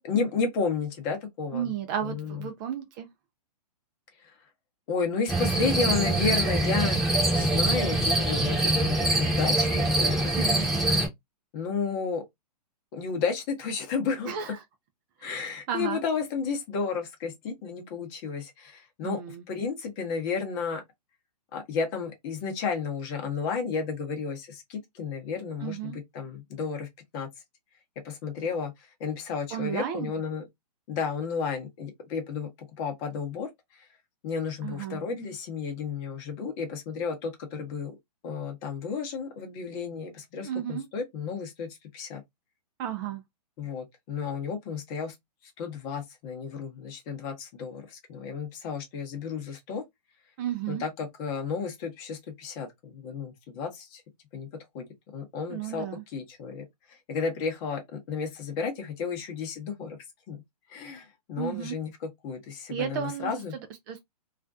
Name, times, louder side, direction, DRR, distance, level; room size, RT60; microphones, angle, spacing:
voice 1, 0.0-1.7 2.0-2.5 4.2-4.3 4.9-10.1 11.5-12.2 12.9-14.3 15.2-20.8 21.5-26.9 27.1-27.3 28.0-30.5 30.9-32.5 32.8-33.9 34.2-38.0 38.2-41.7 41.9-42.2 43.6-45.1 45.4-49.8 50.7-54.0 54.3-54.5 54.7-54.8 55.1-60.0 60.3-60.4 60.7-63.5, left 5 dB, 35° left, 0.8 m, -32 dB
voice 2, 1.5-3.1 10.4-10.7 14.3-14.6 15.2-16.0 19.0-19.4 25.6-26.0 29.5-30.1 34.6-35.0 40.4-40.9 42.8-43.2 50.4-50.8 55.5-56.0 61.4-61.8 62.7-63.4 63.9-64.0, right 9 dB, 30° right, 0.4 m, -33 dB
sound 1, 5.3-11.1, right 1 dB, ahead, 0.9 m, -24 dB
2.4 x 2.2 x 2.4 m
hypercardioid pair, 130°, 21 cm